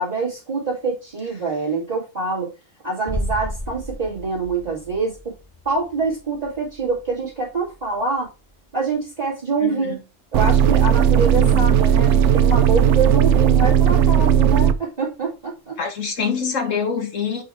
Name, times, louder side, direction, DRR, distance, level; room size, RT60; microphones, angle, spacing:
voice 1, 0.0-2.5 2.8-5.3 5.6-8.3 8.7-10.0 10.3-15.8, right 4 dB, 30° right, 2.5 m, -25 dB
sound 1, 3.1-8.8 9.1-9.2, equal, ahead, 1.6 m, -34 dB
voice 2, 9.6-10.0 11.4-11.8 15.8-17.4, left 6 dB, 80° left, 1.9 m, -26 dB
sound 2, 10.3-14.7, right 8 dB, 75° right, 0.9 m, -16 dB
5.5 x 4.8 x 4.6 m
omnidirectional pair, 1.3 m